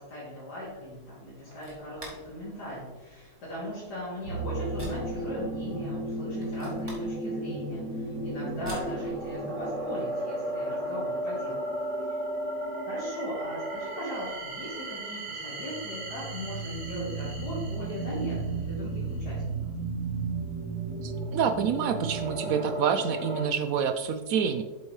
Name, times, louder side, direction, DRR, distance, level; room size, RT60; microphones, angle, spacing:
voice 1, 0.0-11.7 12.9-19.6, equal, 80° left, -9 dB, 3.1 m, -39 dB
sound 1, 0.6-9.9, equal, 15° right, 1.8 m, -50 dB
sound 2, 4.2-23.5, right 2 dB, 50° right, 1.3 m, -34 dB
voice 2, 21.0-24.6, right 7 dB, 70° right, 9 dB, 0.9 m, -27 dB
8.1 x 7.9 x 3.2 m, 1.2 s
omnidirectional pair, 1.7 m